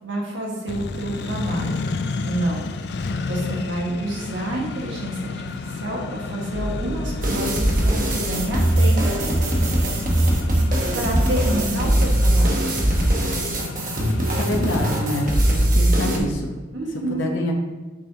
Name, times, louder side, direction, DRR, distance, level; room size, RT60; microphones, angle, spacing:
voice 1, 0.0-1.7 2.2-2.7 3.0-5.3 5.7-9.3 10.9-12.7 16.7-17.3, right 1 dB, 75° right, -2 dB, 1.6 m, -28 dB
Accelerating revving vroom, 0.7-15.7, left 4 dB, 60° left, 0.4 m, -32 dB
sound 1, 6.5-12.2, equal, 5° right, 0.8 m, -32 dB
sound 2, 7.2-16.2, right 1 dB, 45° right, 1.0 m, -21 dB
voice 2, 14.4-16.6 17.1-17.5, left 1 dB, 75° left, 0 dB, 0.8 m, -26 dB
6.1 x 6.1 x 2.8 m, 1.3 s
head